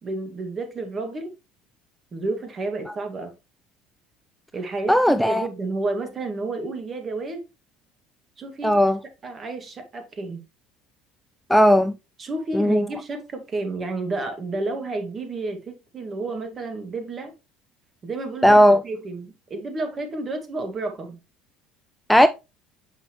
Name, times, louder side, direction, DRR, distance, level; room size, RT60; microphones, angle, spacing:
voice 1, 0.0-1.3 2.1-3.4 4.5-7.4 8.4-8.8 9.2-10.4 12.2-17.3 18.0-21.2, right 2 dB, 35° right, 1.8 m, -31 dB
voice 2, 4.9-5.5 8.6-9.0 11.5-11.9 12.5-12.9 18.4-18.8 22.1-22.3, equal, ahead, 0.4 m, -16 dB
6.3 x 5.3 x 3.0 m
supercardioid pair, 95°, 0 cm